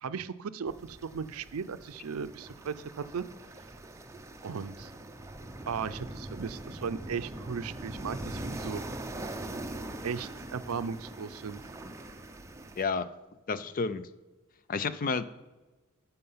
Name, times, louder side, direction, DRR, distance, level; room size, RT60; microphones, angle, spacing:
voice 1, 0.0-3.2 4.4-4.9 5.7-8.8 10.0-11.6, right 6 dB, 80° right, 13 dB, 0.5 m, -36 dB
sound 1, 0.7-12.8, right 1 dB, 15° right, 0.6 m, -42 dB
voice 2, 12.8-13.1 13.5-14.1 14.7-15.3, left 4 dB, 40° left, 14 dB, 0.4 m, -30 dB
12.5 x 5.6 x 5.6 m, 1.2 s
head